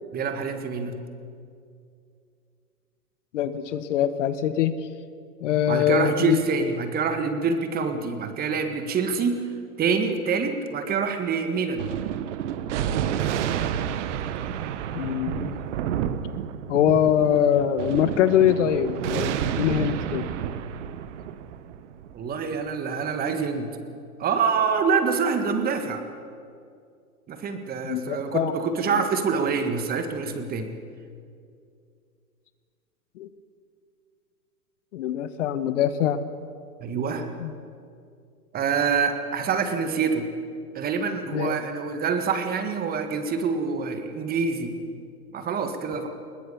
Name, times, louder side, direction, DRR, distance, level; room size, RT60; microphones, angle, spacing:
voice 1, 0.1-1.0 5.7-9.4 9.8-11.8 22.1-23.8 24.2-26.0 27.3-30.7 36.8-37.3 38.5-40.3 40.7-44.7 45.3-46.1, right 5 dB, 20° right, 7 dB, 1.7 m, -26 dB
voice 2, 3.3-4.8 5.4-6.4 14.9-15.6 16.7-20.3 27.8-28.5 33.2-33.3 34.9-36.2 37.4-37.5 41.3-41.5, left 10 dB, 50° left, 12 dB, 1.2 m, -23 dB
Thunder, 11.7-22.6, right 9 dB, 50° right, 1.3 m, -30 dB
21.0 x 20.0 x 7.1 m, 2.3 s
hypercardioid pair, 125°, 46 cm